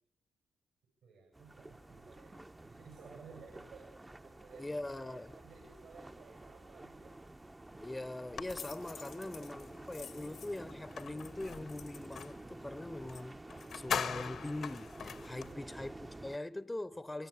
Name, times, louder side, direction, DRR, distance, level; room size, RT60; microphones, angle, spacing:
voice 1, 1.0-7.2 9.2-10.4 15.4-16.1 16.9-17.0, right 5 dB, 75° right, 7.7 m, -57 dB
sound 1, 1.3-16.4, right 2 dB, 20° right, 1.1 m, -51 dB
voice 2, 4.6-5.3 7.8-13.4 13.7-15.9 16.2-17.3, left 1 dB, 15° left, 1.0 m, -42 dB
sound 2, 8.4-12.4 13.1-13.2 13.5-15.5, left 7 dB, 65° left, 1.4 m, -42 dB
24.0 x 23.0 x 8.6 m
supercardioid pair, 50°, 0 cm